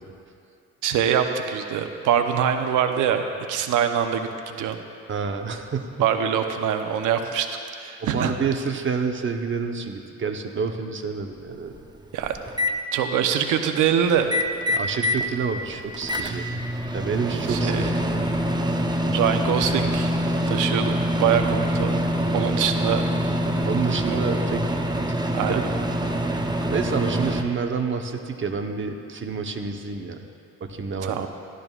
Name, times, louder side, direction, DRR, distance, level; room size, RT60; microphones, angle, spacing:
voice 1, 0.8-4.8 6.0-7.5 7.8-8.3 12.1-12.4 12.9-14.3 17.5-17.8 19.1-20.2 20.5-22.0 22.3-23.0 23.9-24.2 25.3-25.6 31.0-31.3, right 8 dB, 85° right, 6 dB, 0.8 m, -24 dB
voice 2, 5.1-6.1 8.0-12.0 14.7-16.6 16.9-18.3 23.6-24.6 25.1-25.6 26.7-30.2 30.6-31.3, right 5 dB, 40° right, 4 dB, 1.0 m, -28 dB
Microwave oven, 11.2-11.3 11.7-12.7 14.2-15.3 15.6-27.4, equal, 15° right, 0.7 m, -25 dB
16.0 x 12.5 x 2.4 m, 2.4 s
cardioid pair, 90°, 30 cm